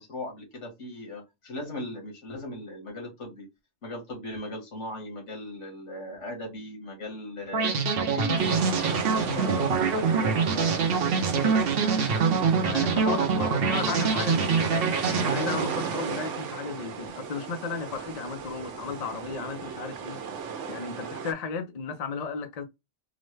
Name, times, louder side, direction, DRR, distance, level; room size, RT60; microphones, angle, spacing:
voice 1, 0.0-3.5 3.8-7.8 8.1-10.8 11.3-11.7, left 2 dB, 80° left, 1.9 m, -38 dB
sound 1, 7.5-16.6, right 5 dB, 60° right, 0.8 m, -25 dB
sound 2, 8.4-21.3, right 6 dB, 90° right, 1.0 m, -36 dB
voice 2, 12.6-20.2 20.7-22.6, left 5 dB, 45° left, 0.5 m, -34 dB
3.9 x 2.1 x 3.1 m
omnidirectional pair, 1.2 m